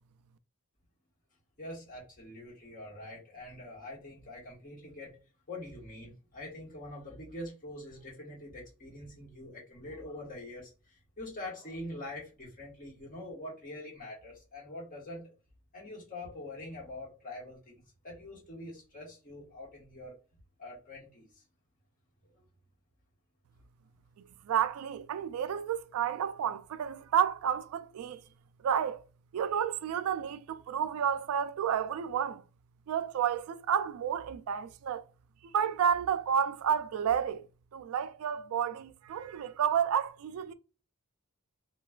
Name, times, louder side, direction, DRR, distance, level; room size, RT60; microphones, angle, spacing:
voice 1, 1.6-5.1 5.5-15.3 15.7-20.1 20.6-21.4, left 1 dB, 40° left, 1.3 m, -44 dB
voice 2, 24.5-28.2 28.6-29.0 29.3-32.4 32.9-35.0 35.5-37.4 37.7-40.5, right 8 dB, 80° right, 0.3 m, -30 dB
3.1 x 2.2 x 2.3 m
head